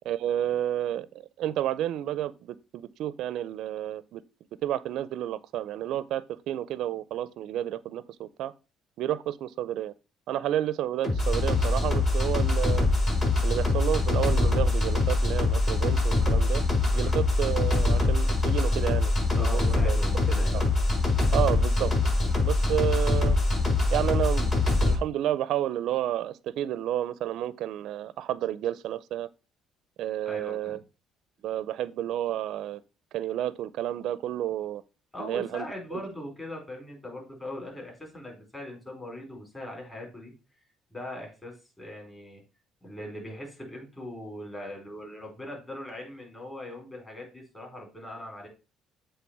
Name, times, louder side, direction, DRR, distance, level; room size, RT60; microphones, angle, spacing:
voice 1, 0.0-4.2 4.6-8.5 9.0-9.9 10.3-12.9 13.4-16.6 16.9-20.0 20.3-20.6 21.3-21.9 22.4-23.4 23.9-24.6 24.8-29.3 30.0-30.8 31.4-32.8 33.1-34.8 35.2-35.7 35.9-36.0, right 12 dB, 75° right, 0.4 m, -31 dB
sound 1, 11.0-24.9, left 2 dB, 35° left, 4.9 m, -24 dB
voice 2, 19.4-20.5 30.3-30.8 35.1-40.3 40.9-42.4 42.8-48.5, left 1 dB, 15° left, 4.4 m, -40 dB
7.9 x 3.3 x 5.9 m
cardioid pair, 100°, 0 cm